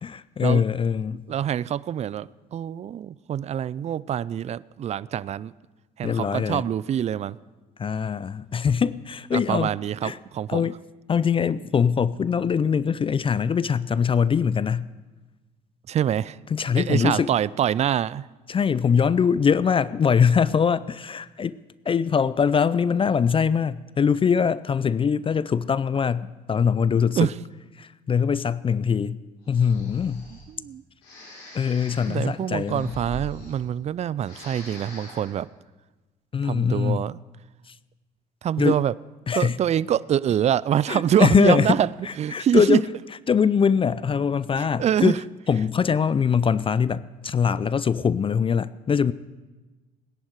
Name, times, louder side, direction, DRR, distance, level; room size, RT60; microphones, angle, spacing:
voice 1, 0.0-1.2 6.0-6.6 7.8-9.7 10.0-10.2 10.5-10.8 11.1-14.9 16.5-17.3 18.5-21.6 21.9-27.2 27.8-29.2 29.5-30.2 31.5-32.8 36.3-37.1 37.7-37.8 38.6-38.8 39.3-39.6 40.9-41.8 42.1-42.8 43.3-45.2 45.5-49.1, left 6 dB, 25° left, 0.4 m, -22 dB
voice 2, 1.3-5.5 6.0-7.4 9.3-10.7 15.9-16.4 16.8-18.3 27.2-27.3 30.5-30.8 32.1-35.5 36.4-37.2 38.4-38.9 39.3-41.9 42.2-42.8 44.5-45.2, right 10 dB, 35° right, 0.4 m, -25 dB
Breathing, 29.4-30.5 31.0-33.9 34.2-35.4, left 1 dB, 75° left, 5.6 m, -42 dB
18.0 x 10.5 x 4.7 m
hypercardioid pair, 65°, 20 cm